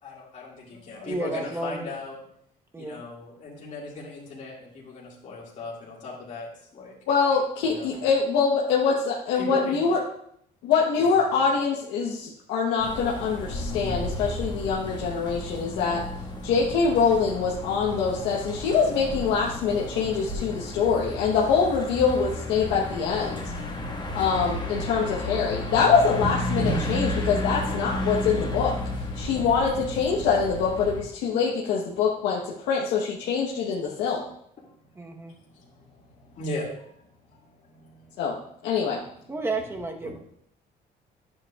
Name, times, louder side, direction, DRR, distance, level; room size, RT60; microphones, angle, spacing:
voice 1, 0.0-2.2 2.8-6.9 7.6-8.0 9.3-9.9 11.0-11.3 23.2-24.2 26.1-27.1 29.2-29.5 34.6-38.5 39.2-39.3 40.0-40.2, left 1 dB, 45° left, -5 dB, 2.2 m, -38 dB
voice 2, 1.0-1.9 2.7-3.0 35.0-35.3 39.3-40.2, right 2 dB, 15° right, 3 dB, 1.1 m, -32 dB
voice 3, 7.1-10.0 10.6-16.0 16.4-23.4 24.1-28.8 29.1-34.2 38.2-38.3 38.6-39.0, left 5 dB, 90° left, -3 dB, 1.1 m, -24 dB
sound 1, 12.8-31.0, left 1 dB, 25° left, 1.6 m, -33 dB
10.5 x 7.6 x 2.4 m, 0.70 s
cardioid pair, 110°, 17 cm